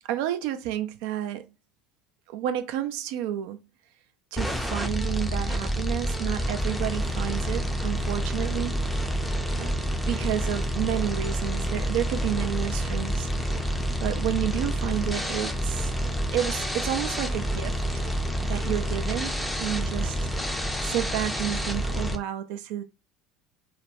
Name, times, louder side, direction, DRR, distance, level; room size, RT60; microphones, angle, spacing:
voice 1, 0.1-1.5 2.3-3.6 4.3-8.7 9.6-9.7 10.1-13.6 14.0-15.9 16.3-18.0 18.5-22.8, right 11 dB, 55° right, 0.3 m, -31 dB
sound 1, 4.4-22.2, equal, ahead, 0.5 m, -28 dB
2.3 x 2.0 x 3.1 m
figure-of-eight pair, 65°, 0 cm